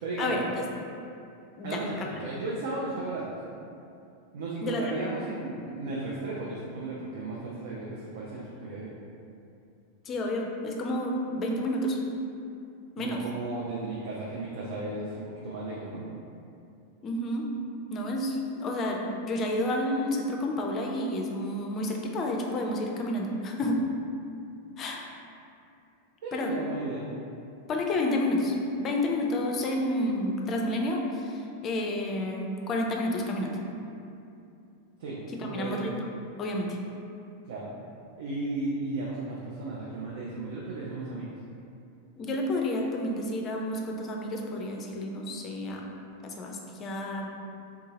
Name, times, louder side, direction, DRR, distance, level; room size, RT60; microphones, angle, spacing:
voice 1, 0.0-0.4 1.6-3.3 4.3-8.9 13.0-16.1 26.2-27.1 35.0-35.9 37.4-37.7 38.2-41.3, right 2 dB, 55° right, -5 dB, 0.4 m, -35 dB
voice 2, 10.1-12.0 13.0-13.2 17.0-17.5 17.9-23.8 24.8-25.0 26.3-26.5 27.7-33.6 35.4-36.0 36.4-36.8 42.2-45.8 46.2-47.3, left 1 dB, 30° left, 1 dB, 0.4 m, -30 dB
3.6 x 2.7 x 2.8 m, 2.6 s
figure-of-eight pair, 90°, 0 cm